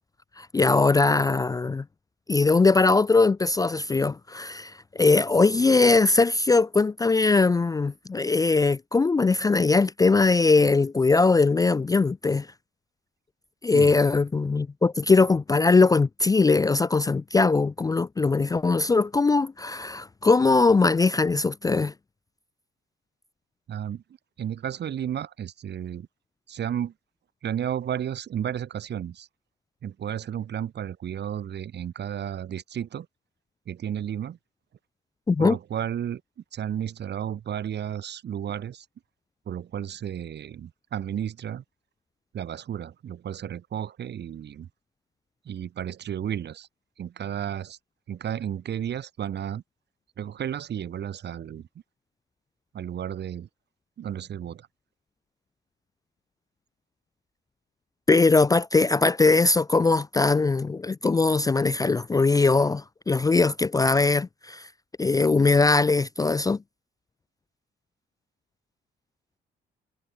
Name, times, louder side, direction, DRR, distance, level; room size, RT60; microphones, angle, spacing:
voice 1, 0.4-1.8 2.3-12.5 13.6-21.9 35.3-35.6 58.1-64.7 65.0-66.6, left 3 dB, 20° left, 0.4 m, -21 dB
voice 2, 23.7-24.0 24.4-26.1 26.5-26.9 27.4-29.3 29.8-33.1 33.7-34.4 35.4-36.2 36.5-38.9 39.5-41.6 42.3-44.7 45.5-46.7 47.0-47.8 48.1-49.6 50.2-51.7 52.7-53.5 54.0-54.7, right 9 dB, 60° right, 1.9 m, -32 dB
cardioid pair, 90°, 20 cm